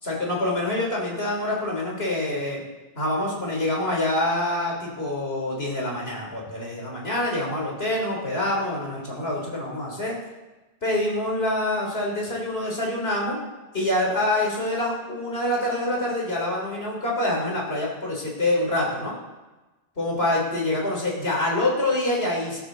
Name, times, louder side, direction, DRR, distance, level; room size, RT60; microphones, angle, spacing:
voice 1, 0.0-2.6 3.0-10.2 10.8-13.4 13.7-19.1 20.0-22.6, left 1 dB, 80° left, -2 dB, 3.8 m, -26 dB
20.0 x 12.5 x 4.0 m, 1.1 s
omnidirectional pair, 1.0 m